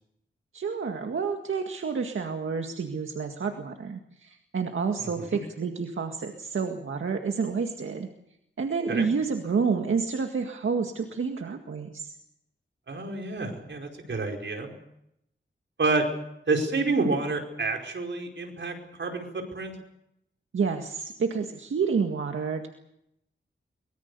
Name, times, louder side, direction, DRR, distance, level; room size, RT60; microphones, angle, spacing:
voice 1, 0.5-8.1 8.6-12.2 20.5-22.7, right 5 dB, 90° right, 4 dB, 1.9 m, -29 dB
voice 2, 5.0-5.4 8.9-9.1 12.9-14.7 15.8-16.1 16.5-19.7, right 3 dB, 70° right, 2 dB, 4.9 m, -29 dB
24.0 x 22.0 x 6.9 m, 0.79 s
wide cardioid pair, 80°, 20 cm